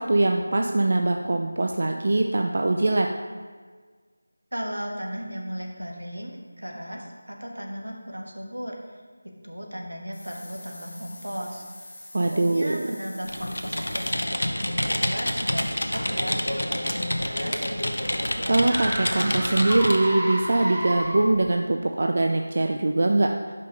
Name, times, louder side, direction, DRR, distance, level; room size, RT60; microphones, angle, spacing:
voice 1, 0.0-3.1 12.1-13.0 18.5-23.3, right 2 dB, 50° right, 3 dB, 0.4 m, -22 dB
voice 2, 4.5-17.6, equal, 80° right, 0 dB, 1.3 m, -36 dB
sound 1, 10.1-14.2, left 1 dB, 40° left, 1.7 m, -45 dB
Computer keyboard, 13.2-20.1, left 1 dB, 80° left, 0.7 m, -28 dB
sound 2, 17.3-21.5, right 1 dB, 20° right, 1.0 m, -32 dB
5.3 x 5.1 x 5.3 m, 1.5 s
figure-of-eight pair, 165°, 0 cm